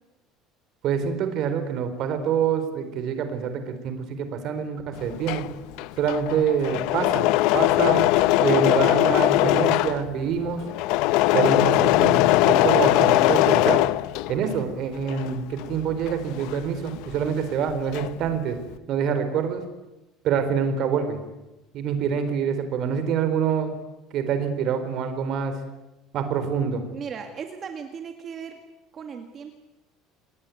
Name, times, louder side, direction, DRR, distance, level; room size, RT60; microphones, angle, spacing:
voice 1, 0.8-5.5 6.0-7.2 7.5-8.0 8.4-10.6 11.3-13.8 14.3-18.6 18.9-19.6 20.2-21.2 21.7-23.7 24.1-25.6 26.1-26.8, right 7 dB, 45° right, 9 dB, 4.0 m, -26 dB
Engine / Mechanisms, 5.0-14.6 15.0-17.3 17.6-18.3, left 17 dB, 65° left, 0.8 m, -21 dB
voice 2, 26.9-28.6 28.9-29.5, right 6 dB, 25° right, 5 dB, 2.0 m, -37 dB
28.5 x 20.0 x 9.3 m, 1.0 s
cardioid pair, 170°, 0 cm